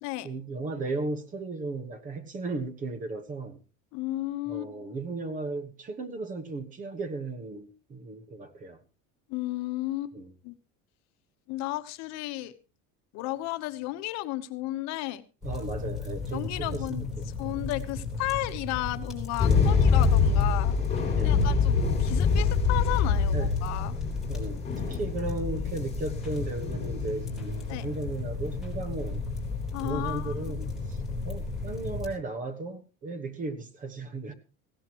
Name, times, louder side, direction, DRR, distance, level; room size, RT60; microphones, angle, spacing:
voice 1, 0.2-3.6 4.5-8.8 10.1-10.3 15.4-17.1 19.4-19.7 21.1-21.5 23.3-23.6 24.3-29.2 29.8-31.0 31.2-34.3, right 3 dB, 25° right, 1.2 m, -35 dB
voice 2, 3.9-4.7 9.3-10.2 10.4-10.5 11.5-12.5 13.1-15.2 16.3-17.0 17.4-20.7 21.0-23.9 27.7-27.9 29.7-30.3, left 17 dB, 55° left, 1.1 m, -33 dB
sound 1, 15.4-32.1, left 3 dB, ahead, 3.5 m, -36 dB
sound 2, 19.4-32.0, left 5 dB, 20° left, 6.2 m, -26 dB
17.5 x 16.0 x 3.0 m
cardioid pair, 170°, 31 cm